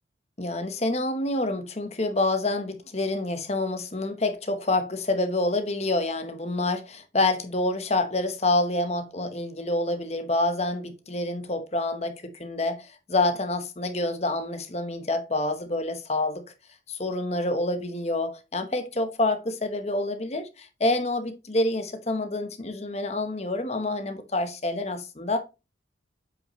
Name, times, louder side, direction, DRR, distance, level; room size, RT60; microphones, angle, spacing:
voice 1, 0.4-16.4 16.9-25.4, left 2 dB, 35° left, 1.0 m, -27 dB
8.0 x 5.4 x 3.1 m
head